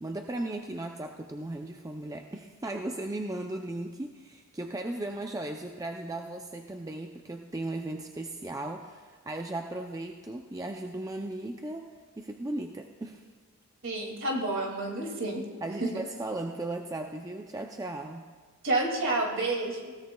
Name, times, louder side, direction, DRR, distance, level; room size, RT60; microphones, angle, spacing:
voice 1, 0.0-13.3 15.6-18.3, right 2 dB, 15° right, 3 dB, 0.4 m, -36 dB
voice 2, 13.8-15.4 18.6-19.9, right 2 dB, 55° right, 0 dB, 2.2 m, -29 dB
20.0 x 17.0 x 2.2 m, 1.5 s
head